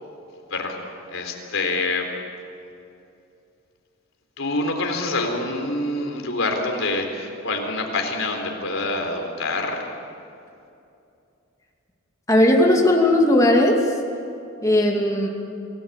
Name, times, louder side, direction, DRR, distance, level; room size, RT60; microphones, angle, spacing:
voice 1, 1.1-2.1 4.4-9.8, left 2 dB, 70° left, 3 dB, 4.0 m, -26 dB
voice 2, 12.3-13.8 14.6-15.3, left 1 dB, 15° left, 0 dB, 2.6 m, -17 dB
27.0 x 18.0 x 8.4 m, 2.6 s
head